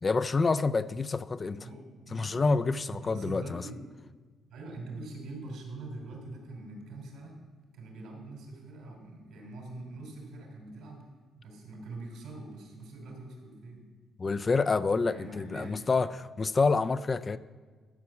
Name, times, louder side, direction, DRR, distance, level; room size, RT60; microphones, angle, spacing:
voice 1, 0.0-1.6 2.1-3.6 14.2-17.4, left 4 dB, 30° left, 13 dB, 0.4 m, -28 dB
voice 2, 1.6-2.6 2.9-3.8 4.5-7.4 7.7-13.9 15.1-15.7, right 2 dB, 85° right, 1 dB, 3.2 m, -44 dB
12.0 x 5.3 x 7.1 m, 1.5 s
cardioid pair, 100°, 0 cm